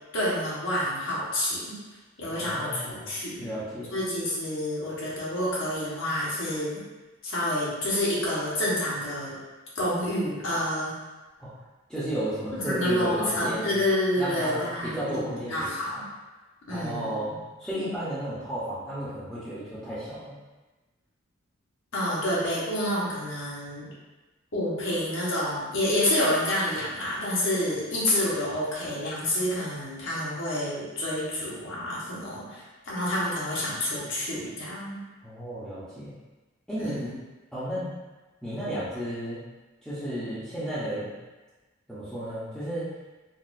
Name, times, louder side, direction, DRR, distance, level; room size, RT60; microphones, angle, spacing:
voice 1, 0.1-1.8 2.2-3.4 3.9-6.8 7.2-9.4 9.7-10.9 12.5-16.0 16.7-17.4 21.9-23.9 24.5-35.0 36.8-37.1, left 1 dB, 60° left, -7 dB, 1.0 m, -28 dB
voice 2, 2.3-3.1 3.4-3.9 11.4-11.5 11.9-13.7 14.2-15.7 16.7-20.4 35.2-36.1 36.7-37.1 37.5-37.9 38.4-39.4 39.8-41.1 41.9-42.9, equal, 5° left, -14 dB, 0.7 m, -33 dB
3.9 x 2.4 x 2.5 m, 1.2 s
head